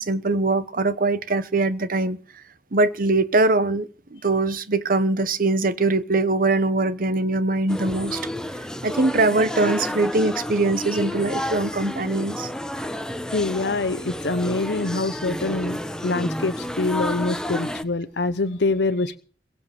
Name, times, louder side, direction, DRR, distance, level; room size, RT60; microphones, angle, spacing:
voice 1, 0.0-2.2 2.7-8.2 8.8-12.5, right 2 dB, 55° right, 1.0 m, -22 dB
sound 1, 7.7-17.8, left 1 dB, 5° left, 0.9 m, -30 dB
voice 2, 13.3-19.2, left 3 dB, 70° left, 0.9 m, -25 dB
22.0 x 7.9 x 7.0 m
head